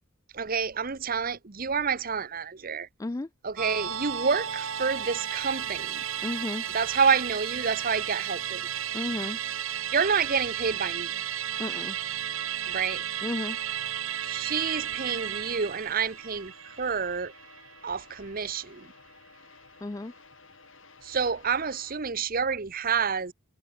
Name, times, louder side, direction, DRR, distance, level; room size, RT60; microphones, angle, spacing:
voice 1, 0.3-2.9 3.4-6.0 6.7-8.6 9.9-11.1 12.7-13.0 14.2-17.3 17.8-18.9 21.0-23.3, right 6 dB, 40° right, 0.9 m, -28 dB
Musical instrument, 3.6-18.2 18.6-18.7, right 10 dB, 75° right, 2.4 m, -34 dB
voice 2, 6.2-6.6 8.9-9.4 11.6-12.0 13.2-13.6 19.8-20.1, left 2 dB, 15° left, 0.3 m, -33 dB
sound 1, 15.6-22.0, left 4 dB, 60° left, 4.1 m, -55 dB
head